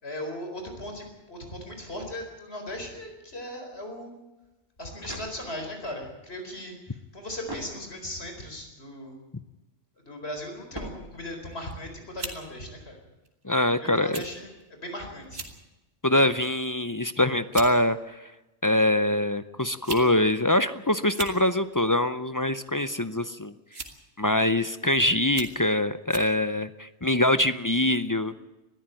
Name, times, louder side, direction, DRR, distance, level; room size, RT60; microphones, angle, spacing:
voice 1, 0.0-4.1 4.8-9.2 10.1-13.0 13.8-15.4, left 1 dB, 60° left, 4 dB, 4.8 m, -38 dB
sound 1, 4.6-5.9 7.4-8.3 10.7-11.6, right 1 dB, 20° right, 3.2 m, -42 dB
sound 2, 11.5-11.7 12.2-12.4 13.2-13.4 14.1-14.3 14.6-14.7 15.2-15.6 16.1-16.4 17.1-17.2 17.5-17.7 18.8-18.9 19.7-20.1 20.3-20.4 21.0-21.4 22.6-22.9 23.7-24.1 24.6-24.7 25.2-25.6 26.1-26.3, right 3 dB, 55° right, 2.2 m, -37 dB
voice 2, 13.4-14.2 16.0-18.2 18.6-23.5 24.2-28.3, left 1 dB, 25° left, 13 dB, 0.4 m, -24 dB
21.0 x 14.0 x 9.0 m, 1.0 s
omnidirectional pair, 1.2 m